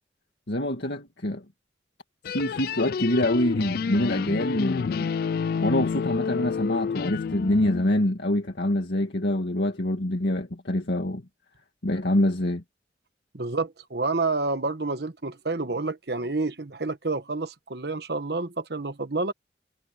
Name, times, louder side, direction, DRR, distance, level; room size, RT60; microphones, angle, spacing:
voice 1, 0.5-1.4 2.3-5.1 5.6-11.2 11.8-12.6, left 1 dB, 70° left, 1.9 m, -25 dB
sound 1, 2.2-7.9, left 6 dB, 55° left, 0.3 m, -29 dB
voice 2, 13.3-19.3, right 3 dB, 60° right, 1.3 m, -29 dB
head